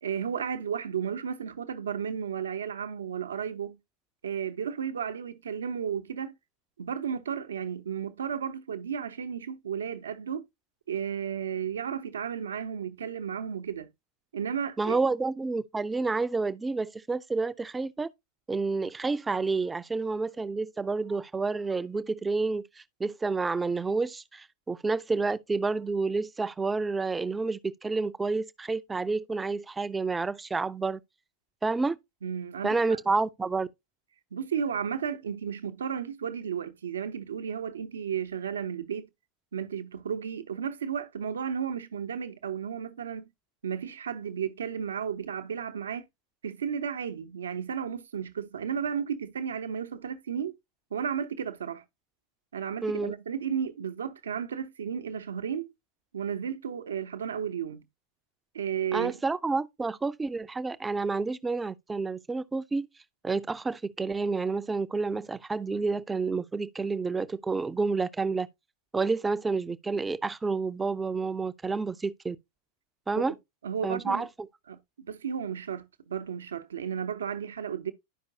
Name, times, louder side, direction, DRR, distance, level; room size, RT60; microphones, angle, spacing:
voice 1, 0.0-3.8 4.2-6.3 6.8-10.5 10.9-13.9 14.3-15.0 32.2-33.0 34.3-39.1 39.5-43.3 43.6-46.0 46.4-50.5 50.9-51.8 52.5-55.7 56.1-57.8 58.5-59.2 73.3-73.4 73.6-74.3 74.7-77.9, right 7 dB, 65° right, 0.8 m, -33 dB
voice 2, 14.8-18.1 18.5-22.6 23.0-31.0 31.6-32.0 32.6-33.7 52.8-53.1 58.9-62.9 63.2-68.5 68.9-72.4 73.1-73.3 73.8-74.3, right 4 dB, 10° right, 0.5 m, -29 dB
12.0 x 5.2 x 2.7 m
figure-of-eight pair, 90°, 0 cm